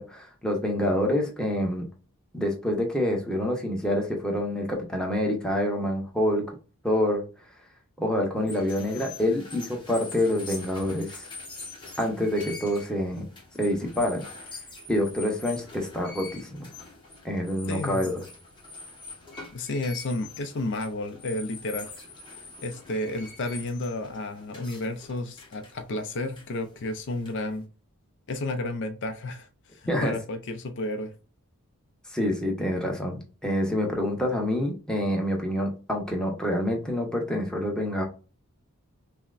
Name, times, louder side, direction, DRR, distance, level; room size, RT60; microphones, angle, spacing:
voice 1, 0.0-1.9 2.3-6.6 6.8-7.2 8.0-11.3 12.0-13.3 13.6-14.2 14.9-16.7 17.2-18.1 29.9-30.1 32.1-38.0, left 1 dB, 5° left, 0.8 m, -27 dB
sound 1, 8.4-27.6, left 4 dB, 20° left, 1.2 m, -44 dB
voice 2, 17.7-18.0 19.5-22.1 22.6-27.7 28.3-31.1, left 2 dB, 55° left, 0.5 m, -32 dB
5.5 x 2.1 x 2.4 m
head